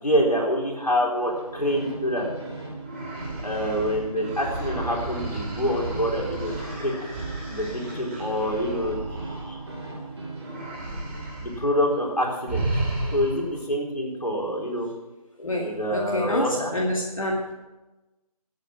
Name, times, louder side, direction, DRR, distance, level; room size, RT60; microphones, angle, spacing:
voice 1, 0.0-2.3 3.4-6.5 6.8-7.1 7.5-9.6 11.4-12.7 13.1-14.9 15.6-16.7, equal, 85° left, -2 dB, 4.3 m, -26 dB
sound 1, 1.2-10.7, right 2 dB, 45° right, 2.7 m, -38 dB
sound 2, 2.8-10.0 10.4-11.7 11.9-12.1 12.5-13.6, right 2 dB, 20° right, 2.4 m, -33 dB
voice 2, 15.4-16.5 16.7-17.5, left 1 dB, 60° left, -3 dB, 2.3 m, -27 dB
13.0 x 8.3 x 6.2 m, 1.1 s
figure-of-eight pair, 160°, 20 cm